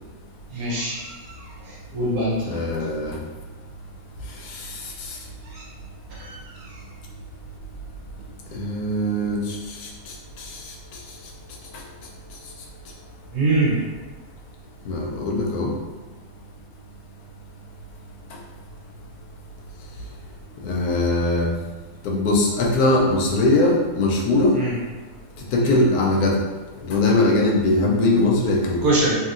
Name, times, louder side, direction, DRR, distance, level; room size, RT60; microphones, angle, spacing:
voice 1, 0.5-2.5 5.4-5.6 6.2-6.8 13.3-13.8 24.5-24.7 25.6-25.7 28.8-29.2, right 2 dB, 70° right, -5 dB, 1.3 m, -24 dB
voice 2, 2.5-3.2 8.5-9.4 14.9-15.7 20.6-21.5 22.0-24.5 25.5-26.3 26.9-28.8, left 2 dB, 85° left, -1 dB, 1.1 m, -20 dB
3.0 x 2.8 x 2.4 m, 1.3 s
omnidirectional pair, 1.6 m